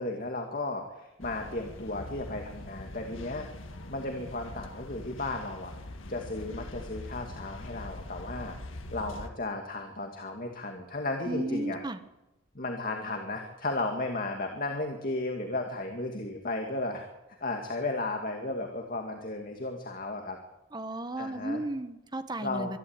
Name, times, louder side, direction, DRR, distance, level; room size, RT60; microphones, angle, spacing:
voice 1, 0.0-3.5 3.9-5.7 6.1-8.6 8.9-11.8 12.5-17.0 17.4-20.4 21.2-21.6 22.4-22.7, left 2 dB, 45° left, 3 dB, 2.3 m, -34 dB
sound 1, 1.2-9.3, left 1 dB, 75° left, 1.9 m, -43 dB
voice 2, 11.2-12.0 20.7-22.8, right 1 dB, 20° right, 10 dB, 1.3 m, -34 dB
24.5 x 12.5 x 9.0 m, 0.93 s
head